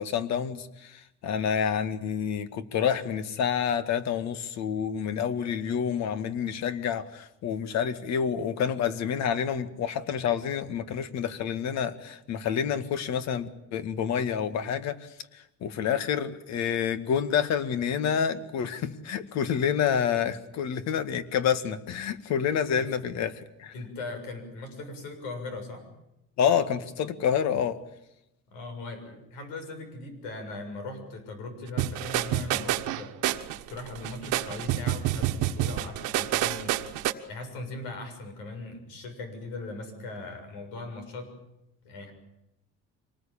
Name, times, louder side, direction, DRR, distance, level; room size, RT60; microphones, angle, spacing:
voice 1, 0.0-23.7 26.4-27.8, left 8 dB, 60° left, 12 dB, 1.9 m, -28 dB
voice 2, 23.7-25.9 28.5-33.2 33.7-41.3 41.8-42.1, left 2 dB, 90° left, 6 dB, 7.0 m, -39 dB
sound 1, 31.8-37.1, right 13 dB, 80° right, 1.5 m, -28 dB
25.0 x 19.5 x 8.8 m, 0.85 s
cardioid pair, 120°, 30 cm